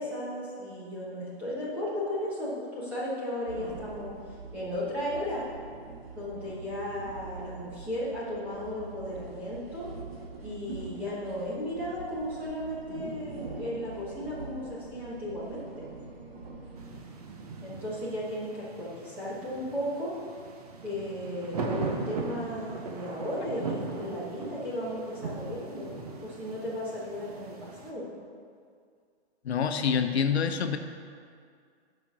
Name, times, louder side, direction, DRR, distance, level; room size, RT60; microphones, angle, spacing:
voice 1, 0.0-4.1 4.5-5.4 6.1-9.9 10.4-15.9 17.6-20.1 20.8-25.9 26.2-28.0, left 1 dB, 5° right, -9 dB, 1.0 m, -35 dB
sound 1, 3.5-17.0, right 3 dB, 70° right, 1.5 m, -44 dB
sound 2, 16.8-27.9, right 4 dB, 35° right, 0.8 m, -39 dB
voice 2, 29.4-30.8, left 7 dB, 85° left, 7 dB, 0.8 m, -26 dB
8.9 x 5.2 x 6.0 m, 2.2 s
hypercardioid pair, 180°, 32 cm